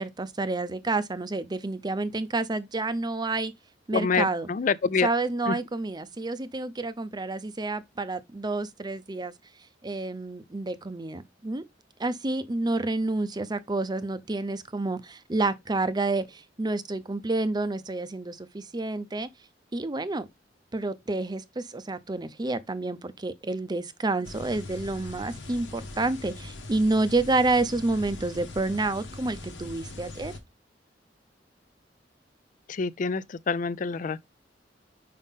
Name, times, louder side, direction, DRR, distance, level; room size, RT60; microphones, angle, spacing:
voice 1, 0.0-3.5 3.9-4.5 5.0-9.3 9.8-11.6 12.0-19.3 19.7-20.3 20.7-30.3, right 2 dB, 25° right, 0.6 m, -29 dB
voice 2, 3.9-5.1 5.5-5.6 32.7-34.2, left 5 dB, 45° left, 0.4 m, -27 dB
sound 1, 24.2-30.4, left 2 dB, 90° left, 1.4 m, -41 dB
5.7 x 5.0 x 3.6 m
head